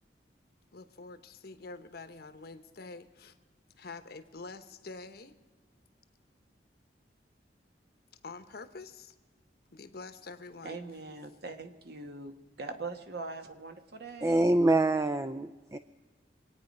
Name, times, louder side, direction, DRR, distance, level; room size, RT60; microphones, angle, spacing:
voice 1, 0.7-3.4 3.8-5.4 8.2-9.1 9.7-10.8, left 3 dB, 60° left, 10 dB, 1.0 m, -46 dB
voice 2, 10.6-14.4, right 3 dB, 65° right, 6 dB, 1.3 m, -42 dB
voice 3, 14.2-15.8, right 2 dB, 15° right, 12 dB, 0.4 m, -25 dB
25.5 x 9.1 x 5.3 m, 1.3 s
head